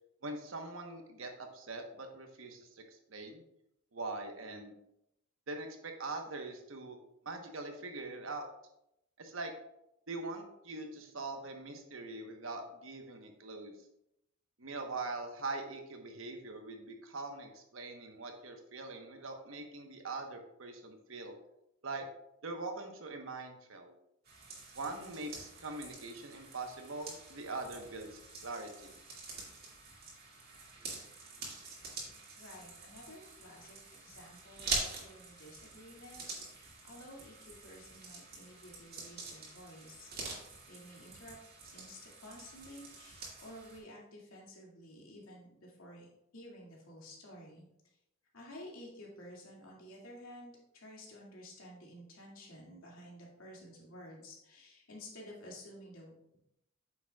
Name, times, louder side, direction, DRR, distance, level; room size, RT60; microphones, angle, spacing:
voice 1, 0.2-3.4 3.9-4.8 5.5-7.0 7.2-8.5 9.2-9.5 10.1-13.8 14.6-21.3 21.8-22.0 22.4-24.0 24.7-28.9, right 3 dB, 70° right, 4 dB, 1.1 m, -42 dB
sound 1, 24.3-43.8, right 3 dB, 50° right, 2.2 m, -45 dB
voice 2, 32.1-40.2 40.7-41.3 41.7-46.1 46.3-47.7 48.3-56.2, left 1 dB, 90° left, -3 dB, 2.3 m, -52 dB
8.5 x 7.0 x 2.3 m, 0.82 s
head